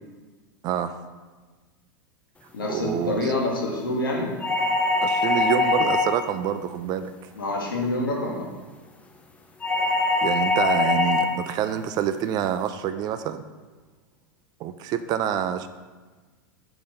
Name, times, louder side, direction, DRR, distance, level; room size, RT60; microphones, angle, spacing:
voice 1, 0.6-1.0 2.7-3.3 5.0-7.1 10.2-13.4 14.6-15.7, right 10 dB, 35° right, 11 dB, 0.3 m, -27 dB
voice 2, 2.5-4.3 7.4-8.5, left 2 dB, 80° left, -1 dB, 1.4 m, -26 dB
sound 1, 4.4-6.3 9.6-11.4, left 3 dB, 10° left, 0.5 m, -22 dB
4.9 x 4.0 x 5.4 m, 1.3 s
figure-of-eight pair, 90°, 11 cm